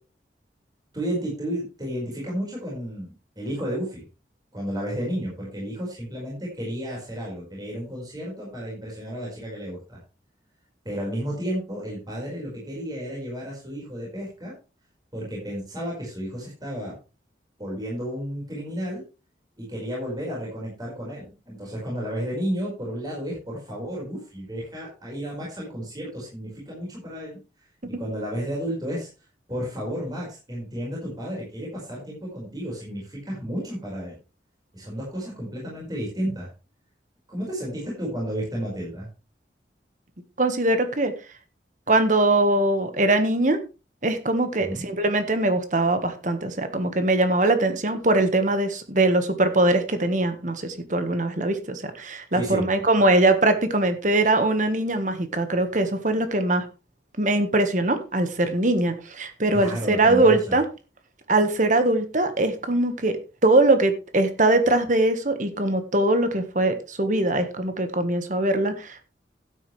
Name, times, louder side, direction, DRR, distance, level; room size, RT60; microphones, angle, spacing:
voice 1, 0.9-4.0 4.5-10.0 10.8-14.5 15.1-16.9 17.6-19.0 19.6-27.4 27.9-29.1 29.5-34.2 34.7-36.5 37.3-39.1 44.7-44.8 52.3-52.7 59.5-60.6, equal, 20° right, 5.1 m, -32 dB
voice 2, 40.4-41.1 41.9-43.6 44.0-56.7 57.2-60.6 61.3-69.0, right 2 dB, 45° right, 1.5 m, -22 dB
12.5 x 9.5 x 3.3 m
head